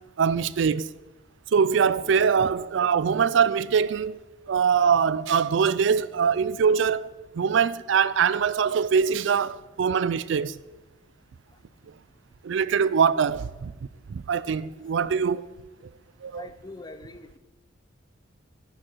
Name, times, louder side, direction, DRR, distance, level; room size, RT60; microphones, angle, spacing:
voice 1, 0.2-0.9 1.5-4.2 4.5-7.1 7.4-10.6 12.4-13.7 14.1-15.4 16.2-16.5, right 6 dB, 70° right, 0.4 m, -23 dB
voice 2, 16.3-17.4, left 2 dB, 20° left, 0.6 m, -42 dB
12.5 x 10.5 x 4.5 m
head